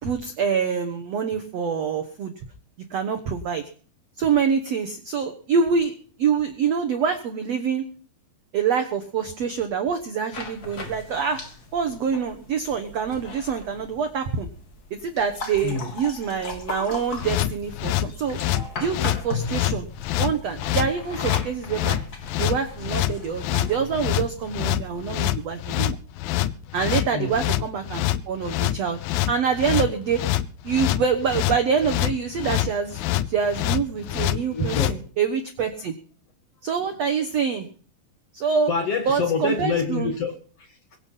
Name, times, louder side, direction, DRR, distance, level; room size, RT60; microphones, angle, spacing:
voice 1, 0.0-2.3 2.9-3.6 4.2-7.8 8.5-11.4 11.7-14.5 14.9-18.4 18.8-19.9 20.2-22.0 22.4-26.0 26.7-29.0 29.3-30.2 30.6-35.9 36.6-37.7 38.3-38.7 39.1-40.1, right 6 dB, 80° right, 6 dB, 1.4 m, -25 dB
sound 1, 10.3-26.0, left 4 dB, 35° left, 1.6 m, -38 dB
sound 2, 17.2-35.0, left 14 dB, 80° left, 2.1 m, -25 dB
voice 2, 34.4-35.0 38.7-41.0, left 5 dB, 50° left, 5 dB, 2.0 m, -27 dB
23.0 x 8.1 x 5.6 m, 0.42 s
omnidirectional pair, 4.9 m